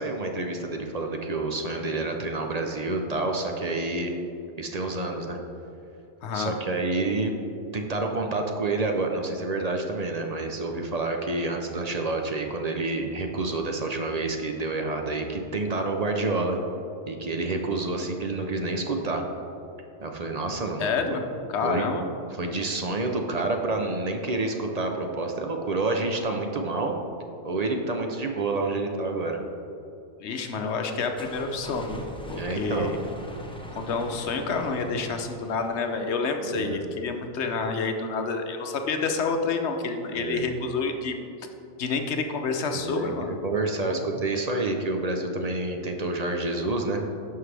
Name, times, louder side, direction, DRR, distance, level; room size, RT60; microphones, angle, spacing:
voice 1, 0.0-4.1 4.6-5.4 6.3-7.3 7.7-16.6 17.1-19.2 20.0-20.8 21.1-21.2 21.6-21.9 22.4-27.0 27.4-29.4 32.3-32.9 36.4-36.9 40.1-40.7 42.7-47.0, right 2 dB, 45° right, 3 dB, 0.6 m, -28 dB
voice 2, 6.2-6.5 20.8-22.0 30.2-32.0 32.3-33.0 33.7-41.1 41.8-43.3 43.8-44.0, left 4 dB, 75° left, 5 dB, 1.0 m, -28 dB
sound 1, 30.7-36.2, equal, 5° left, 0.5 m, -42 dB
11.0 x 5.7 x 3.3 m, 2.8 s
omnidirectional pair, 1.2 m